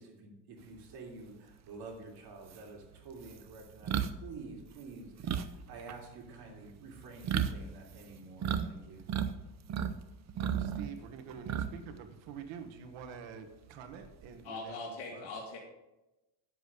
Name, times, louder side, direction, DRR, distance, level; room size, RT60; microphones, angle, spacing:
voice 1, 0.0-3.9 4.2-9.1, right 3 dB, 55° right, 0 dB, 3.2 m, -49 dB
sound 1, 1.9-2.0 2.5-8.7 8.9-9.9 10.3-12.0 12.3-12.5 13.9-14.4, right 8 dB, 40° right, 0.6 m, -34 dB
voice 2, 10.4-15.3, right 6 dB, 85° right, 7 dB, 1.6 m, -47 dB
voice 3, 14.4-15.6, left 3 dB, 60° left, -1 dB, 1.8 m, -41 dB
10.0 x 7.8 x 5.2 m, 1.0 s
cardioid pair, 150°, 45 cm